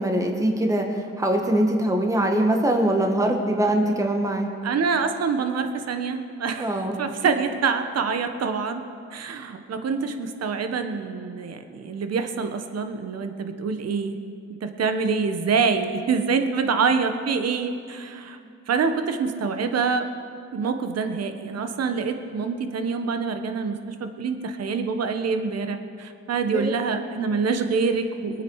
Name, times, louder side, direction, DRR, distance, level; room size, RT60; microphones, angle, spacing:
voice 1, 0.0-4.5 6.6-6.9 26.5-26.7, right 1 dB, 10° right, 3 dB, 1.6 m, -22 dB
voice 2, 4.6-8.8 9.1-14.2 14.6-18.4 18.7-20.1 20.5-28.4, right 5 dB, 55° right, 7 dB, 1.3 m, -26 dB
23.5 x 9.3 x 4.8 m, 2.4 s
cardioid pair, 90°, 30 cm